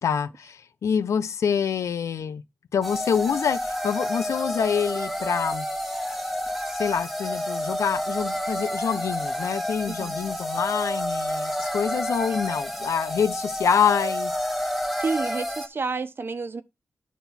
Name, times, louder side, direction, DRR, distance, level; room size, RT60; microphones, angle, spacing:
voice 1, 0.0-2.4 2.7-5.7 6.7-14.3, left 7 dB, 85° left, 0.9 m, -26 dB
sound 1, 2.8-15.7, equal, ahead, 1.5 m, -29 dB
voice 2, 9.9-10.2 15.0-16.6, right 4 dB, 45° right, 1.1 m, -30 dB
9.4 x 3.9 x 5.9 m
cardioid pair, 85°, 5 cm